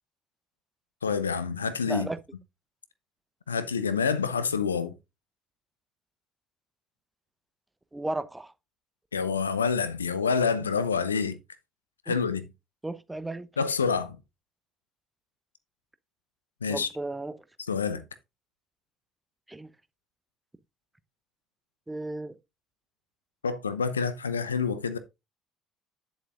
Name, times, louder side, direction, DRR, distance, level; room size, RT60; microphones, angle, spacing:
voice 1, 1.0-2.1 3.5-4.9 9.1-11.4 12.1-12.5 13.6-14.2 16.6-16.9 17.7-18.0 23.4-25.0, left 5 dB, 85° left, 0.7 m, -27 dB
voice 2, 1.9-2.2 7.9-8.5 12.1-12.2 12.8-13.5 16.7-17.3 19.5-19.7 21.9-22.3, right 2 dB, 10° right, 0.9 m, -34 dB
10.0 x 7.3 x 2.5 m
figure-of-eight pair, 55°, 0 cm